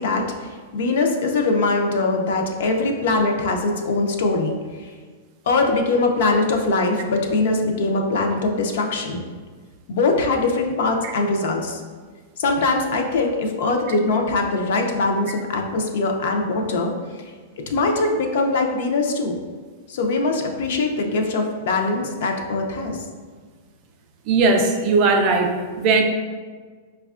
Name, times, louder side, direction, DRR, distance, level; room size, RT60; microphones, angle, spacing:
voice 1, 0.0-4.6 5.5-9.2 9.9-11.8 12.4-16.9 17.7-19.4 19.9-23.0, left 3 dB, 60° left, 3 dB, 0.4 m, -22 dB
voice 2, 24.3-26.0, right 3 dB, 30° right, 3 dB, 0.3 m, -18 dB
4.9 x 2.2 x 2.3 m, 1.5 s
supercardioid pair, 170°, 0 cm